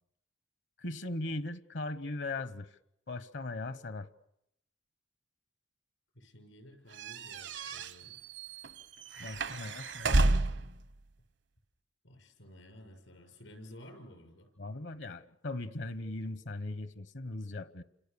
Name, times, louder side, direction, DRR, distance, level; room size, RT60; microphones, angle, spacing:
voice 1, 0.8-2.8 3.1-4.1 9.2-10.2 14.6-17.8, left 2 dB, 65° left, 13 dB, 1.1 m, -39 dB
voice 2, 6.1-8.2 9.1-9.8 12.0-14.5, left 1 dB, 85° left, 5 dB, 6.7 m, -53 dB
sound 1, 7.0-10.7, right 2 dB, 65° right, 1.0 m, -31 dB
29.5 x 27.0 x 7.0 m, 0.80 s
head